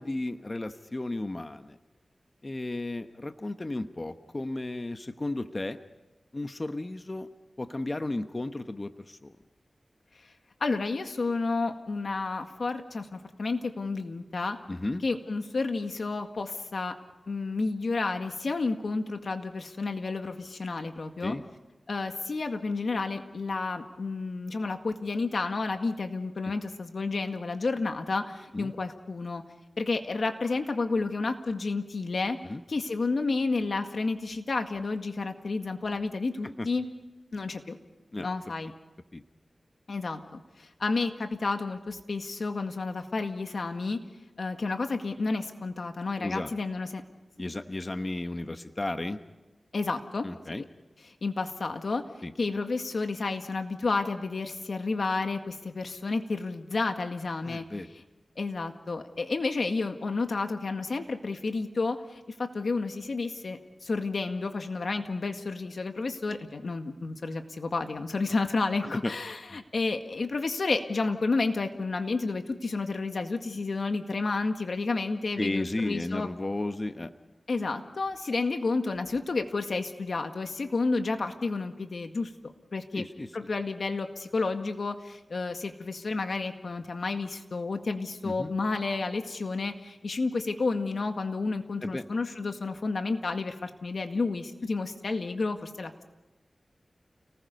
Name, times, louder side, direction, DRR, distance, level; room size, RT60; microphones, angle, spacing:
voice 1, 0.0-1.8 2.4-5.8 6.3-7.3 7.6-9.3 14.7-15.0 21.2-21.4 26.4-26.5 28.5-28.7 32.4-32.6 36.4-36.7 38.1-38.3 39.1-39.2 46.2-46.5 47.4-49.2 50.2-50.6 52.2-52.3 57.4-57.9 68.8-69.1 69.5-69.6 75.4-77.1 82.9-83.5 88.2-88.5 91.8-92.0, left 2 dB, 35° left, 8 dB, 1.1 m, -34 dB
voice 2, 10.6-14.6 15.0-16.9 17.3-21.4 21.9-29.4 29.8-32.4 32.7-36.9 37.3-37.8 38.2-38.7 39.9-44.0 44.4-47.0 49.7-50.3 50.6-50.7 51.1-52.0 52.4-57.7 58.4-76.3 77.5-82.3 82.7-83.1 83.3-96.0, left 3 dB, 70° left, 6 dB, 1.9 m, -31 dB
30.0 x 19.5 x 5.4 m, 1.1 s
wide cardioid pair, 60°, 0 cm